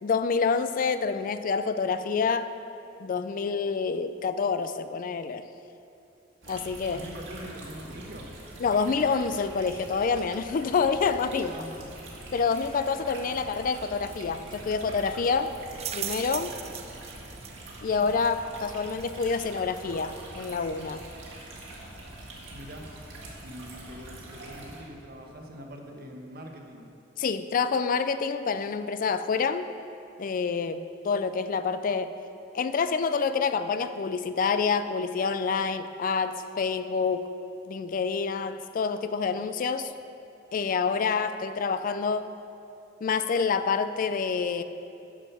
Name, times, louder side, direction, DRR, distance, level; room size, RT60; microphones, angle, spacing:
voice 1, 0.0-2.5 3.0-5.4 6.5-7.0 8.6-11.6 12.3-15.6 15.9-16.5 17.8-21.0 27.2-29.7 30.2-32.2 32.5-37.3 37.7-39.9 40.5-42.3 43.0-44.6, left 5 dB, 45° left, 11 dB, 0.4 m, -27 dB
sound 1, 6.4-24.8, right 1 dB, 75° right, 2.1 m, -44 dB
voice 2, 6.9-8.3 11.5-11.9 22.5-22.9 23.4-26.9, equal, 55° right, 2 dB, 1.2 m, -43 dB
sound 2, 13.8-24.5, right 9 dB, 35° right, 0.4 m, -44 dB
9.9 x 6.3 x 6.7 m, 2.7 s
head